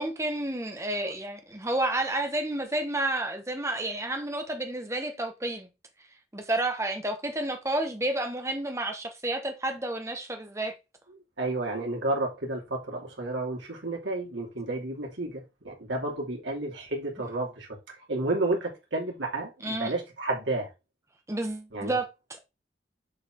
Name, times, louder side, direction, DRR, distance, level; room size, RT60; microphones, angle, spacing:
voice 1, 0.0-5.7 6.3-10.7 19.6-19.9 21.3-22.4, right 1 dB, 15° right, 1.0 m, -30 dB
voice 2, 11.4-17.7 18.1-20.7 21.7-22.0, right 2 dB, 80° right, 2.5 m, -31 dB
6.6 x 4.8 x 3.7 m
head